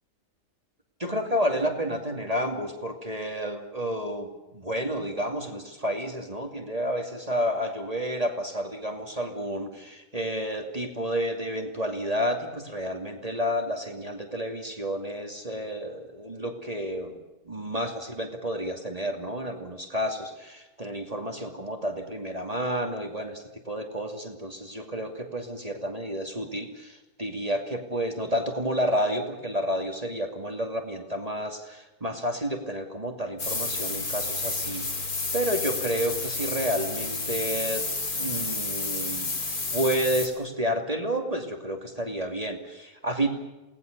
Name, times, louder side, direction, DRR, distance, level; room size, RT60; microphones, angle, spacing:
voice 1, 1.0-17.2 17.4-37.8 38.2-39.3 39.7-43.3, equal, 25° right, 3 dB, 2.6 m, -30 dB
sound 1, 33.4-40.3, left 3 dB, 75° left, 3.8 m, -30 dB
29.0 x 19.0 x 6.7 m, 1.0 s
omnidirectional pair, 1.6 m